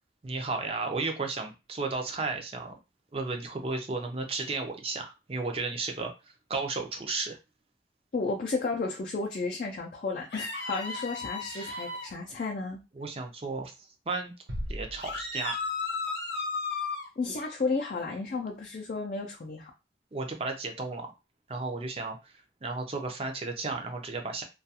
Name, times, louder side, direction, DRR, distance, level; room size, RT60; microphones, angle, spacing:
voice 1, 0.2-2.7 3.1-6.1 6.5-7.4 10.9-11.0 11.5-11.9 13.0-13.7 14.1-14.3 14.7-15.5 20.1-21.1 21.5-22.3 22.6-24.4, right 3 dB, 35° right, 4 dB, 0.5 m, -33 dB
voice 2, 8.1-12.8 17.2-19.7, left 3 dB, 45° left, -1 dB, 0.4 m, -32 dB
sound 1, 10.3-12.1 15.0-17.1, left 4 dB, 70° left, 0.7 m, -34 dB
sound 2, 14.5-16.1, equal, 90° right, 0.7 m, -39 dB
2.3 x 2.3 x 2.7 m, 0.27 s
head